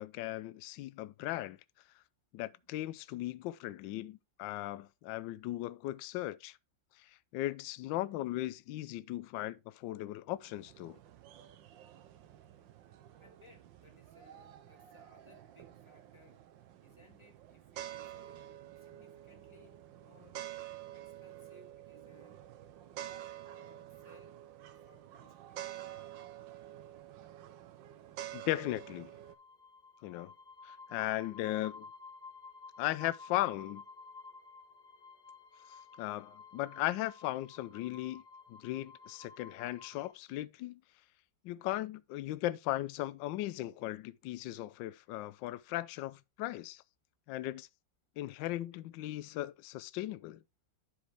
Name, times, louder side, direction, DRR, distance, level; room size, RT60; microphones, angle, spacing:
voice 1, 0.0-1.6 2.3-6.6 7.3-11.0 28.3-29.1 30.0-30.3 30.6-31.9 32.8-33.8 36.0-38.2 38.5-40.8 41.4-46.8 47.3-47.7 48.2-50.4, left 15 dB, 75° left, 1.2 m, -37 dB
sound 1, 10.4-29.3, right 12 dB, 70° right, 1.4 m, -49 dB
voice 2, 13.2-16.4 16.8-20.5 20.9-22.4 23.0-24.4 24.8-25.8 29.5-29.6, left 2 dB, 15° left, 1.8 m, -63 dB
sound 2, 29.2-40.1, left 4 dB, 60° left, 1.5 m, -53 dB
11.5 x 4.7 x 3.3 m
omnidirectional pair, 2.2 m